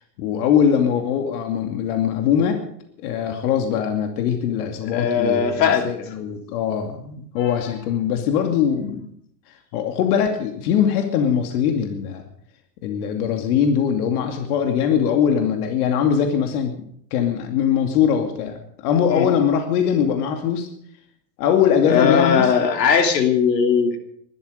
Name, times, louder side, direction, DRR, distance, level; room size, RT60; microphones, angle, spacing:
voice 1, 0.2-2.6 3.0-9.0 9.7-12.2 12.8-16.7 17.1-20.7 21.4-22.5, left 8 dB, 65° left, 4 dB, 2.6 m, -21 dB
voice 2, 4.8-5.9 7.4-7.5 19.1-19.3 21.9-24.0, left 6 dB, 85° left, 5 dB, 3.2 m, -19 dB
20.0 x 13.0 x 5.2 m, 0.67 s
hypercardioid pair, 120°, 49 cm